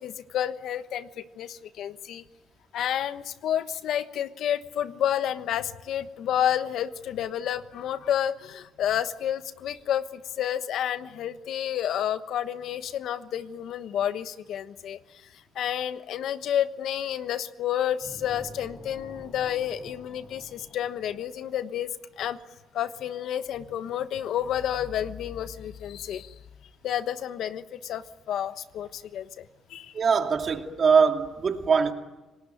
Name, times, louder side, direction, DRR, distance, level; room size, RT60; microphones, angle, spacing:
voice 1, 0.0-2.2 2.7-15.0 15.5-21.9 22.2-22.4 22.7-26.3 26.8-29.9, left 10 dB, 75° left, 12 dB, 1.2 m, -30 dB
sound 1, 18.0-21.8, left 1 dB, 25° left, 7.8 m, -48 dB
voice 2, 29.9-31.9, right 5 dB, 45° right, 4 dB, 2.7 m, -22 dB
29.0 x 19.0 x 9.3 m, 1.1 s
cardioid pair, 90°, 0 cm